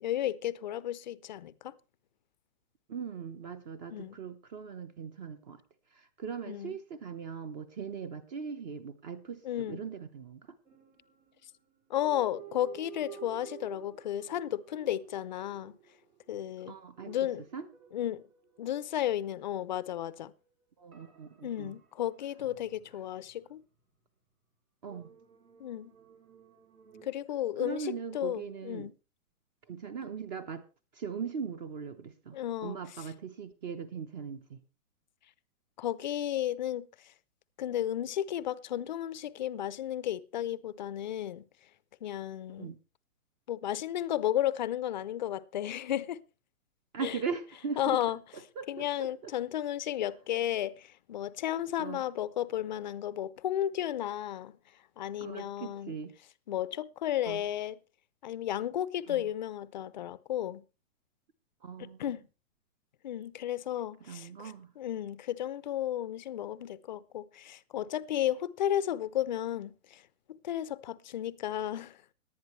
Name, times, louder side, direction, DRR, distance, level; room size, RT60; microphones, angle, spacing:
voice 1, 0.0-1.7 3.9-4.2 6.5-6.7 9.4-9.8 11.9-15.8 16.3-16.8 17.1-17.4 17.9-18.2 18.6-20.3 21.4-23.6 25.6-25.9 27.0-28.9 32.3-32.8 35.8-37.1 37.6-41.4 42.0-42.7 43.5-46.2 47.0-47.2 47.8-48.2 48.7-54.6 55.0-55.9 56.5-57.8 58.2-60.6 61.8-62.2 63.0-70.0 70.3-72.0, left 11 dB, 35° left, 0.5 m, -33 dB
voice 2, 2.9-5.6 5.9-10.4 16.6-17.2 17.5-17.7 20.8-21.7 24.8-25.1 27.6-28.9 29.7-30.6 30.9-34.6 42.6-42.8 46.9-48.0 48.3-49.3 51.8-52.0 55.2-56.1 57.3-57.4 59.1-59.3 61.6-62.0 64.0-64.7, right 6 dB, 30° right, 0.9 m, -40 dB
sound 1, 10.7-11.4 12.0-16.5 17.0-20.3 20.9-23.5 24.9-27.1, right 10 dB, 75° right, 4.4 m, -53 dB
18.0 x 11.0 x 3.1 m
hypercardioid pair, 160°, 43 cm